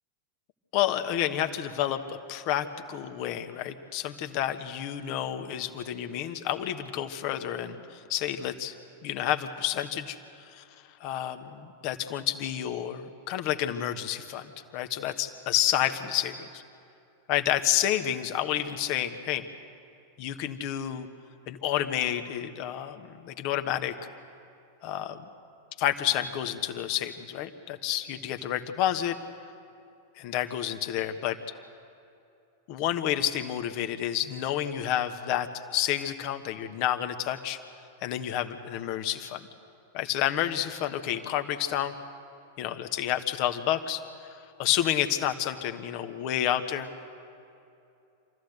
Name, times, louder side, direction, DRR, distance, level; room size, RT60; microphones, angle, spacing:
voice 1, 0.7-8.7 9.0-10.6 11.0-16.6 17.3-19.5 20.2-21.1 21.5-23.9 24.8-25.2 25.8-29.2 30.2-31.4 32.7-37.6 38.0-39.5 39.9-41.9 42.6-46.9, left 11 dB, 45° left, 8 dB, 1.3 m, -30 dB
26.5 x 14.5 x 8.0 m, 2.7 s
figure-of-eight pair, 90°, 0 cm